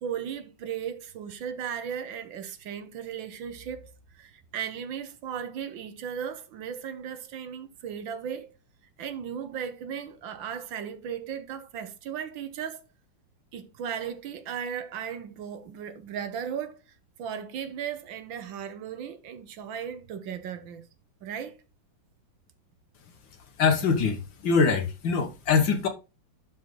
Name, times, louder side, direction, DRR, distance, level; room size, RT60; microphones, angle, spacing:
voice 1, 0.0-8.5 9.0-12.8 13.5-16.8 17.2-20.9 21.2-21.6, right 8 dB, 70° right, 1.6 m, -36 dB
voice 2, 23.6-25.9, left 5 dB, 65° left, 2.0 m, -23 dB
11.5 x 4.3 x 3.8 m
omnidirectional pair, 2.3 m